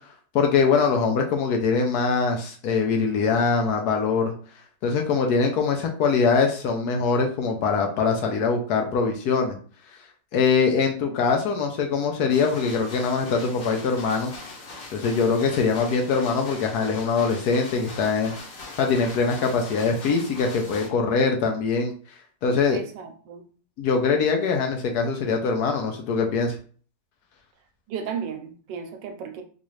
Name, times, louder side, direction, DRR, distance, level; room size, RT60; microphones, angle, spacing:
voice 1, 0.3-4.3 4.8-9.6 10.3-14.3 14.9-18.3 18.8-21.9 22.4-22.8 23.8-26.6, left 5 dB, 70° left, 3 dB, 1.0 m, -23 dB
sound 1, 12.3-20.9, left 3 dB, 55° left, 1.3 m, -41 dB
voice 2, 22.7-23.4 27.9-29.4, right 7 dB, 85° right, 5 dB, 1.3 m, -34 dB
4.0 x 2.4 x 3.0 m, 0.43 s
omnidirectional pair, 1.9 m